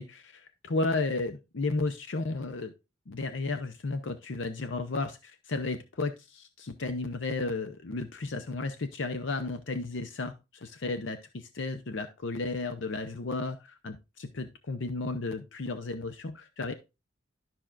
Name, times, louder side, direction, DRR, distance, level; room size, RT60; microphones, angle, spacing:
voice 1, 0.0-2.7 3.1-16.7, left 3 dB, 65° left, 8 dB, 0.7 m, -33 dB
12.5 x 5.9 x 2.5 m, 0.27 s
head